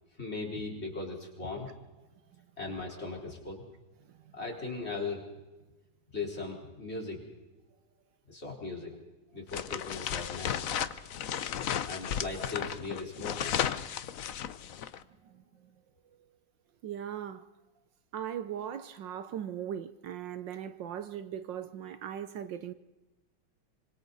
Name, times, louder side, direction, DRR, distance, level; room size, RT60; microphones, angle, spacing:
voice 1, 0.2-1.7 2.6-3.6 4.3-5.2 6.1-7.2 8.3-8.9 9.3-10.5 11.8-13.6, left 3 dB, 30° left, 4.7 m, -38 dB
sound 1, 9.5-15.0, left 9 dB, 60° left, 1.0 m, -34 dB
voice 2, 15.2-15.7 16.8-17.5 18.1-22.7, right 9 dB, 70° right, 1.5 m, -39 dB
26.0 x 25.0 x 4.1 m
omnidirectional pair, 2.1 m